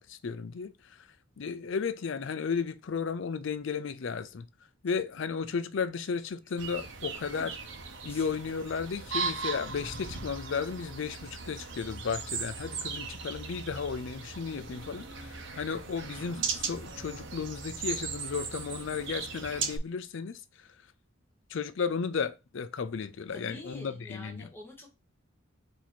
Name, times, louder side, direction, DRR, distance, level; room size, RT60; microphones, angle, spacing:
voice 1, 0.1-1.1 1.4-4.5 4.8-7.6 8.0-20.7 21.5-24.5, left 5 dB, 60° left, 0.4 m, -34 dB
sound 1, 6.6-19.8, right 5 dB, 60° right, 0.8 m, -38 dB
voice 2, 23.3-24.9, left 2 dB, 10° left, 1.1 m, -47 dB
4.6 x 2.7 x 4.2 m
head